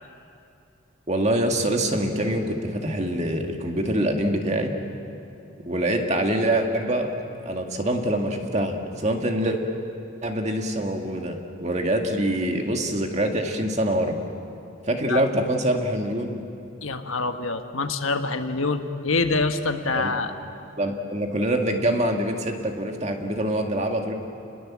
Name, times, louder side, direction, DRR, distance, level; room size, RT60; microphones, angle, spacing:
voice 1, 1.1-4.7 5.7-7.1 7.5-8.8 9.0-9.6 10.2-14.1 14.9-16.4 19.9-20.1 20.8-24.1, right 1 dB, 35° right, 3 dB, 2.0 m, -25 dB
voice 2, 16.8-20.3, left 3 dB, 85° left, 7 dB, 1.4 m, -25 dB
30.0 x 21.0 x 7.5 m, 2.7 s
head